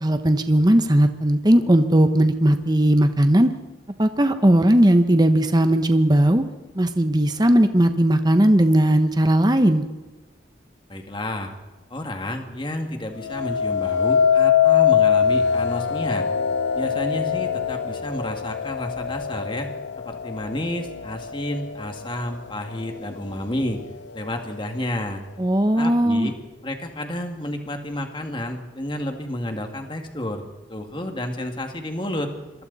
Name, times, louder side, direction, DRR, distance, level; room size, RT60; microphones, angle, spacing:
voice 1, 0.0-3.5 4.0-6.4 6.7-9.8 25.4-26.3, right 1 dB, 25° right, 8 dB, 1.0 m, -17 dB
voice 2, 10.9-11.5 11.9-16.3 16.7-19.7 20.1-23.8 24.1-25.2 25.7-26.3 26.6-30.4 30.7-32.3, left 1 dB, 30° left, 4 dB, 2.3 m, -30 dB
sound 1, 13.2-22.4 22.9-23.4, left 8 dB, 90° left, 0.7 m, -23 dB
27.0 x 23.0 x 4.2 m, 1.2 s
head